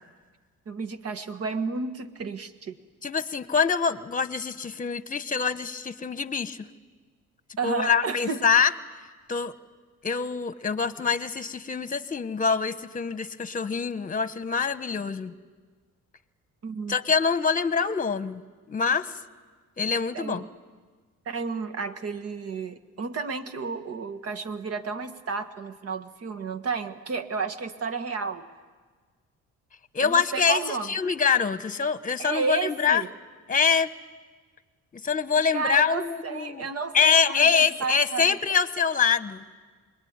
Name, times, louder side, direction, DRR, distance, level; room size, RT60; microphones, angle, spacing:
voice 1, 0.7-2.8 7.6-8.4 16.6-17.0 20.1-20.5 21.3-28.5 30.0-30.9 32.2-33.1 35.5-38.6, right 5 dB, 50° right, 10 dB, 1.7 m, -32 dB
voice 2, 3.0-6.6 7.6-8.7 9.3-9.5 10.0-15.3 16.9-18.4 18.7-19.1 19.8-20.4 29.9-33.0 33.5-33.9 35.0-36.6 36.9-39.4, left 6 dB, 25° left, 13 dB, 1.2 m, -25 dB
26.5 x 21.5 x 9.6 m, 1.5 s
cardioid pair, 90°, 30 cm